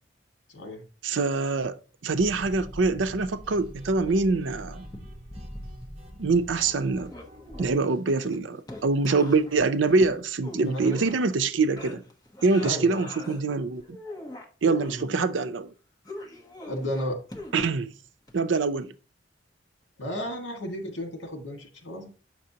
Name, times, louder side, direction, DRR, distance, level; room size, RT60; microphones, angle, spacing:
voice 1, 0.5-0.8 10.6-11.2 12.6-13.0 14.9-15.2 16.7-17.2 20.0-22.1, equal, 80° left, 1.8 m, -33 dB
voice 2, 1.0-4.8 6.2-7.1 7.6-12.0 12.4-14.0 14.6-15.7 17.5-17.9 18.3-18.9, right 3 dB, 75° right, 0.6 m, -24 dB
sound 1, 2.1-3.6 4.8-6.2 6.5-11.5 11.8-13.4 13.8-15.0 16.0-17.8 18.3-18.4, left 1 dB, 20° left, 1.1 m, -43 dB
sound 2, 2.2-7.8, equal, 30° right, 1.2 m, -44 dB
7.6 x 5.9 x 2.8 m
head